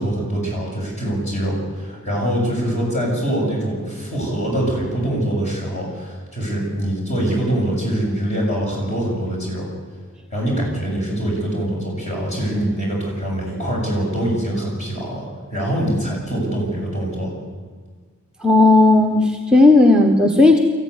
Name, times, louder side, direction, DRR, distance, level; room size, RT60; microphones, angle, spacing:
voice 1, 0.0-9.7 10.3-17.3, right 1 dB, 30° left, -2 dB, 7.2 m, -24 dB
voice 2, 18.4-20.6, left 2 dB, 5° right, 1 dB, 1.2 m, -13 dB
23.0 x 15.0 x 9.8 m, 1.5 s
head